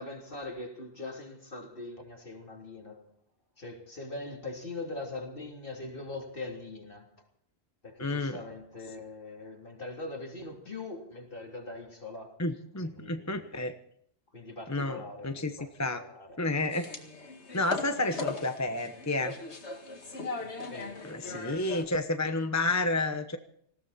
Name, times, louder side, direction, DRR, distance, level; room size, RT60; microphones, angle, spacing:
voice 1, 0.0-3.1 3.6-7.1 7.8-12.4 12.8-13.6 14.3-16.4 17.7-17.8 20.4-21.6, left 2 dB, 50° left, 3.5 m, -42 dB
voice 2, 8.0-8.4 12.4-13.7 14.7-15.5 15.8-16.0 16.4-16.9 17.5-19.4 21.0-23.4, left 2 dB, 15° left, 1.0 m, -30 dB
sound 1, 16.7-21.8, left 3 dB, 70° left, 2.4 m, -39 dB
19.5 x 17.5 x 4.2 m
omnidirectional pair, 1.2 m